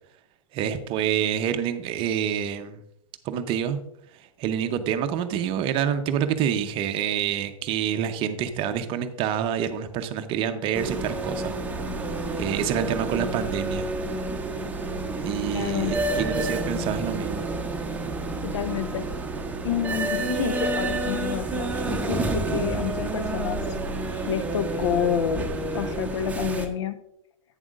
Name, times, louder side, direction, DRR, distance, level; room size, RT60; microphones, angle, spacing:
voice 1, 0.5-2.8 3.2-3.8 4.4-11.5 12.4-13.9 15.2-17.5, right 9 dB, 30° right, 9 dB, 0.7 m, -27 dB
sound 1, 10.7-26.7, right 2 dB, 10° right, 1.0 m, -29 dB
voice 2, 15.5-16.0 18.4-19.1 19.6-23.6 24.3-25.5 25.7-27.0, left 9 dB, 55° left, 11 dB, 0.8 m, -28 dB
11.0 x 8.9 x 2.5 m, 0.79 s
figure-of-eight pair, 100°, 17 cm